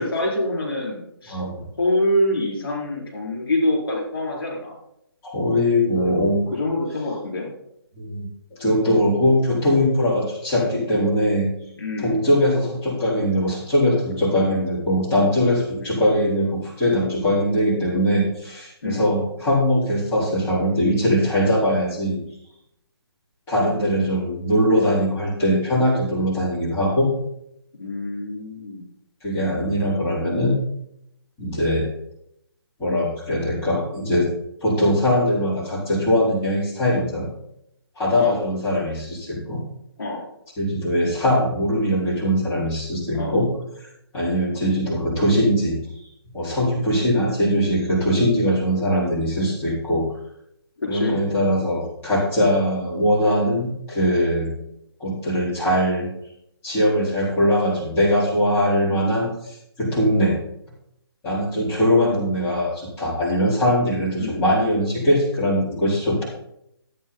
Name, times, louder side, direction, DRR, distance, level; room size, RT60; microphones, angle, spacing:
voice 1, 0.0-1.4 1.8-4.8 5.9-6.2 6.5-7.5 11.8-12.2 15.8-15.9 18.8-19.1 27.8-28.8 38.2-38.4 40.0-40.3 43.1-43.4 50.8-51.2 64.2-64.4, left 1 dB, 60° left, -2 dB, 4.8 m, -25 dB
voice 2, 1.3-1.6 5.2-6.4 8.0-11.5 12.0-22.2 23.5-27.1 29.2-30.5 31.4-31.9 32.8-34.3 34.6-37.3 38.0-39.6 40.6-43.5 43.8-43.9 44.1-45.8 46.3-50.0 50.9-54.5 55.0-56.1 56.6-60.3 61.2-66.2, equal, 15° left, -9 dB, 4.4 m, -21 dB
14.0 x 8.7 x 4.0 m, 0.78 s
figure-of-eight pair, 145°, 13 cm